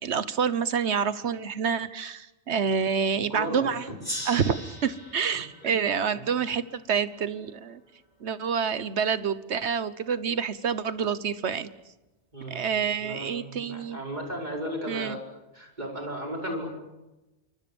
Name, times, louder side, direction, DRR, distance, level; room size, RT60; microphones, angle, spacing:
voice 1, 0.0-3.8 4.2-7.8 8.2-11.7 12.5-14.0 14.9-15.2, right 6 dB, 75° right, 14 dB, 1.4 m, -28 dB
voice 2, 3.3-4.0 5.6-5.7 6.1-6.3 12.3-15.2 15.5-16.7, equal, 40° right, 0 dB, 5.5 m, -35 dB
Gong, 4.0-7.2, equal, 20° left, 6.8 m, -40 dB
27.5 x 24.0 x 7.1 m, 1.0 s
omnidirectional pair, 1.2 m